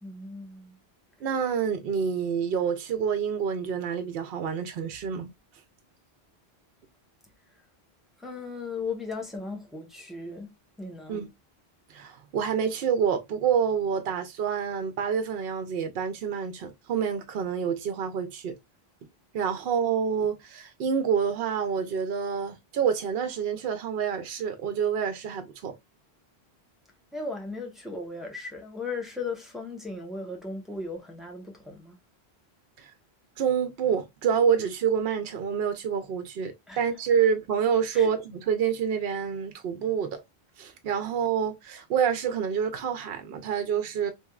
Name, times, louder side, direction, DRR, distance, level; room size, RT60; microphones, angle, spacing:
voice 1, 0.0-0.8 8.2-11.2 27.1-32.0 36.7-36.8 37.2-37.3 37.9-38.1, left 3 dB, ahead, 0.8 m, -37 dB
voice 2, 1.2-5.3 11.1-11.3 11.9-18.5 19.3-25.7 32.8-32.9 33.4-40.2 40.6-44.1, right 7 dB, 70° right, 0.8 m, -27 dB
3.3 x 3.0 x 2.2 m
omnidirectional pair, 1.1 m